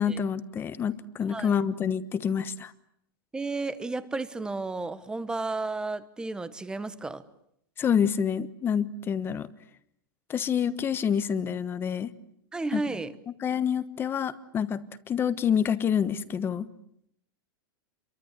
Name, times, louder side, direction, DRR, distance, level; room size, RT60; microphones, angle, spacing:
voice 1, 0.0-2.7 7.8-9.5 10.3-12.1 12.7-12.8 13.4-16.7, left 7 dB, 20° left, 14 dB, 1.2 m, -27 dB
voice 2, 3.3-7.2 12.5-13.1, right 3 dB, 5° right, 14 dB, 1.2 m, -32 dB
29.5 x 23.5 x 8.3 m, 0.72 s
supercardioid pair, 160°, 12 cm